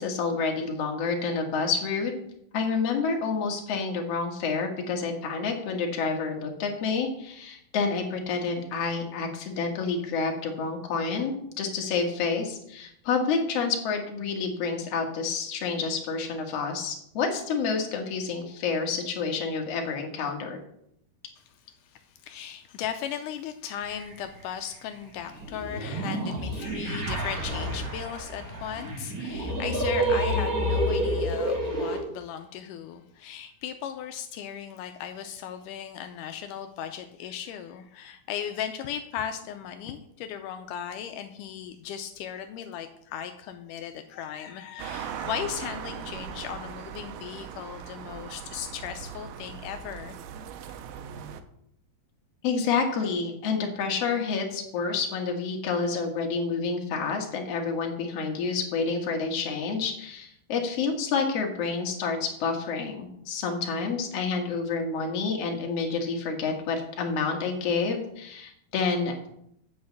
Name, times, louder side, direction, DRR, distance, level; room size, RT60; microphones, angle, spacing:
voice 1, 0.0-2.1 2.5-20.6 52.4-69.1, left 5 dB, 55° left, 2 dB, 1.9 m, -29 dB
voice 2, 21.4-50.2, left 9 dB, 85° left, 7 dB, 1.8 m, -37 dB
sound 1, 23.8-24.1 25.3-32.0, right 1 dB, 40° right, 1.3 m, -29 dB
sound 2, 44.8-51.4, right 8 dB, 85° right, 2.6 m, -39 dB
8.7 x 5.2 x 7.0 m, 0.73 s
omnidirectional pair, 4.3 m